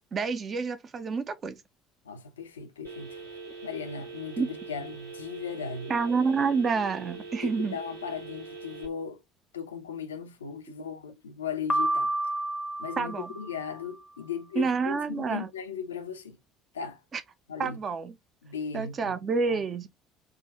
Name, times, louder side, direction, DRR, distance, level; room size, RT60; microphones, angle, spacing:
voice 1, 0.1-1.6 4.4-4.5 5.9-7.7 13.0-13.3 14.6-15.5 17.1-17.2 17.6-18.1 18.7-19.9, right 5 dB, 35° right, 0.6 m, -28 dB
voice 2, 2.0-3.3 3.6-5.9 7.4-9.2 9.5-12.1 12.8-16.4 16.7-17.0 17.5-17.8 18.4-19.1 19.5-19.6, left 6 dB, 75° left, 0.5 m, -37 dB
Telephone, 2.8-8.9, right 4 dB, 85° right, 1.8 m, -43 dB
Piano, 11.7-13.9, right 1 dB, 20° left, 0.6 m, -30 dB
3.5 x 2.2 x 2.8 m
figure-of-eight pair, 60°, 0 cm